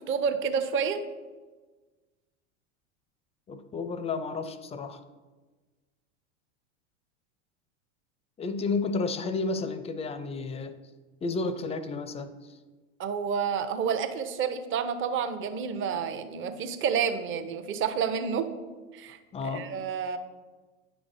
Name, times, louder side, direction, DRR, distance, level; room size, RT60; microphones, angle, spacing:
voice 1, 0.1-1.0 13.0-18.5 18.9-19.2 19.4-20.2, right 6 dB, 35° right, 8 dB, 0.7 m, -29 dB
voice 2, 3.5-5.0 8.4-10.8 11.2-12.3 19.3-19.7, left 3 dB, 15° left, 11 dB, 0.4 m, -31 dB
9.2 x 5.9 x 2.6 m, 1.3 s
hypercardioid pair, 100°, 38 cm